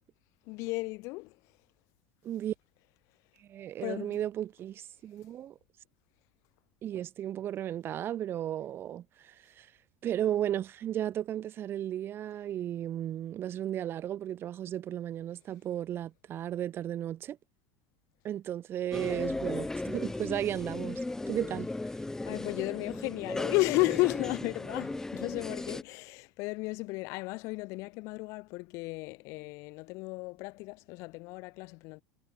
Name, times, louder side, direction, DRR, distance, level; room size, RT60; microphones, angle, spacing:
voice 1, 0.5-1.3 3.8-4.2 22.2-32.0, left 25 dB, 60° left, 0.7 m, -33 dB
voice 2, 2.2-2.5 3.5-5.6 6.8-9.7 10.0-17.4 18.2-21.0 21.3-21.7, right 11 dB, 45° right, 1.3 m, -34 dB
sound 1, 18.9-25.8, left 2 dB, 10° left, 0.8 m, -36 dB
hypercardioid pair, 90°, 6 cm